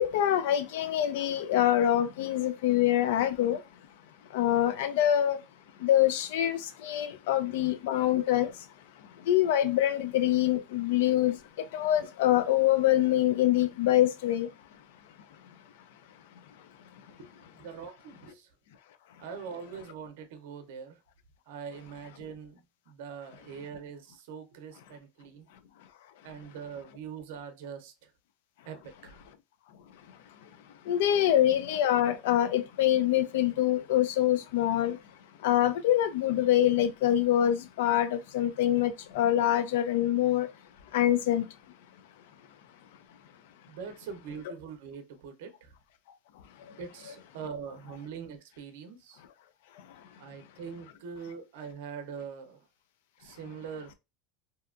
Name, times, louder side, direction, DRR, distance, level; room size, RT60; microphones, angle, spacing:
voice 1, 0.0-3.6 4.3-5.4 5.8-8.7 9.0-14.5 30.4-30.5 30.8-35.0 35.4-40.5 40.9-41.5 46.6-46.8 49.7-50.1, left 12 dB, 80° left, 0.4 m, -25 dB
voice 2, 17.5-18.5 19.2-21.0 21.5-25.5 26.2-28.1 28.6-29.2 31.2-31.3 43.7-45.7 46.8-49.2 50.2-52.7 53.2-53.9, right 6 dB, 75° right, 0.6 m, -43 dB
2.7 x 2.2 x 2.4 m
supercardioid pair, 145°, 0 cm